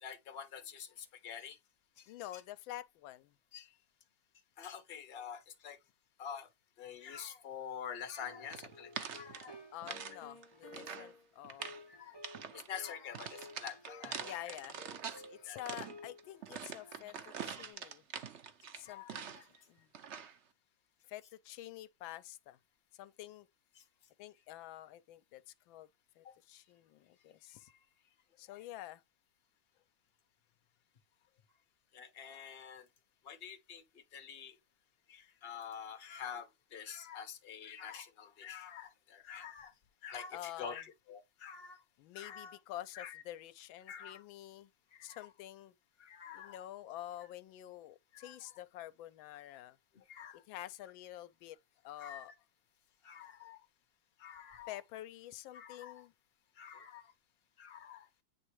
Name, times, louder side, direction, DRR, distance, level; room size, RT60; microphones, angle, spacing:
voice 1, 0.0-1.6 2.0-2.1 2.3-2.4 3.5-3.7 4.6-5.8 6.2-6.5 6.8-9.6 11.6-12.2 12.5-14.5 15.4-15.6 16.9-17.0 18.9-19.4 26.2-26.3 28.5-28.6 31.9-32.8 33.2-33.8 34.1-34.5 35.1-39.7 40.0-41.8 42.1-42.6 42.9-43.2 43.9-44.2 44.9-45.2 46.0-46.6 48.2-48.5 49.9-50.4 52.0-52.3 53.0-53.6 54.2-54.8 55.5-56.0 56.6-57.1 57.6-58.1, left 8 dB, 35° left, 1.1 m, -47 dB
voice 2, 2.1-3.3 9.7-11.7 14.2-14.8 15.3-17.1 17.4-18.0 18.8-19.4 19.7-19.9 21.1-22.6 23.0-23.5 24.2-25.4 25.7-25.9 26.2-27.7 28.4-29.0 40.3-40.8 42.0-44.7 45.0-45.7 46.3-49.8 50.5-51.6 51.8-52.3 54.7-56.1, left 14 dB, 80° left, 1.3 m, -48 dB
sound 1, 8.2-17.7, left 1 dB, 15° left, 0.9 m, -55 dB
sound 2, 8.5-10.2 10.4-11.1 11.4-11.8 12.2-12.7 13.1-15.3 15.6-19.6 19.9-20.4, right 7 dB, 70° right, 0.6 m, -45 dB
9.2 x 3.6 x 3.1 m
omnidirectional pair, 2.2 m